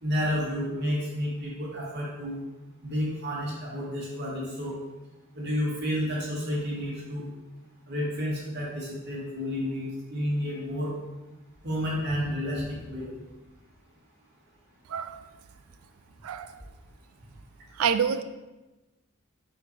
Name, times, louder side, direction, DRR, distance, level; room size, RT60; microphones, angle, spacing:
voice 1, 0.0-2.3 2.8-4.7 5.4-7.2 7.9-10.9 11.6-13.1, equal, 55° right, -5 dB, 2.0 m, -30 dB
voice 2, 14.9-15.2 16.2-16.5 17.8-18.2, right 7 dB, 90° right, 11 dB, 0.4 m, -27 dB
5.9 x 4.3 x 4.6 m, 1.1 s
head